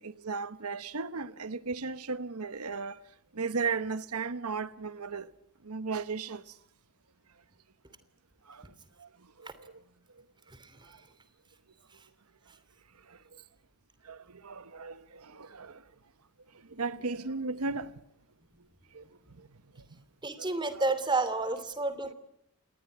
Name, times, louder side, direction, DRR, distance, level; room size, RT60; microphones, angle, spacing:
voice 1, 0.0-3.0 3.3-5.3 5.6-6.5 8.5-8.7 9.0-9.1 9.4-9.7 13.1-13.4 14.0-15.8 16.7-17.9 18.9-19.0 20.4-20.9, right 4 dB, 90° right, 1.1 m, -36 dB
voice 2, 20.2-22.1, right 3 dB, 20° right, 2.8 m, -30 dB
27.5 x 20.5 x 9.4 m
head